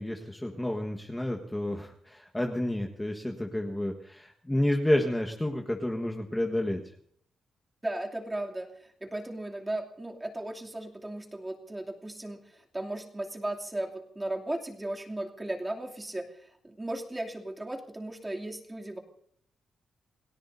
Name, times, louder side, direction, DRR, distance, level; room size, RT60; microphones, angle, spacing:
voice 1, 0.0-6.8, left 1 dB, 10° left, 1 dB, 1.5 m, -30 dB
voice 2, 7.8-19.0, right 1 dB, 15° right, 1 dB, 2.7 m, -36 dB
29.5 x 18.0 x 2.7 m, 0.63 s
cardioid pair, 115°, 0 cm